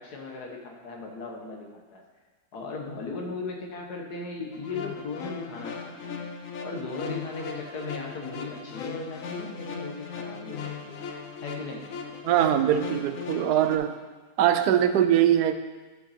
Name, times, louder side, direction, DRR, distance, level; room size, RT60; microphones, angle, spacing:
voice 1, 0.0-2.0 2.5-6.4 6.6-11.0 11.4-11.9, left 3 dB, 85° left, 1 dB, 1.9 m, -37 dB
sound 1, 4.5-13.8, left 5 dB, 65° left, 1.2 m, -38 dB
voice 2, 12.2-14.0 14.4-15.5, right 10 dB, 90° right, 10 dB, 1.2 m, -22 dB
12.0 x 5.7 x 4.3 m, 1.3 s
omnidirectional pair, 1.6 m